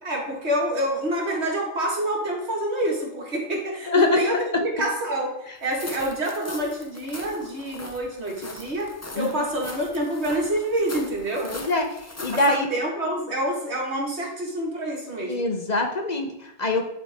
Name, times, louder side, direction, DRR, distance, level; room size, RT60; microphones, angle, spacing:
voice 1, 0.0-11.5 12.3-15.5, right 1 dB, 80° right, -2 dB, 2.2 m, -27 dB
voice 2, 3.9-4.2 9.2-9.4 11.4-11.9 12.2-12.7 15.3-16.8, left 2 dB, 45° left, 3 dB, 0.9 m, -23 dB
sound 1, 5.6-12.6, left 2 dB, 20° left, 0.6 m, -40 dB
12.0 x 4.1 x 3.6 m, 0.85 s
omnidirectional pair, 1.1 m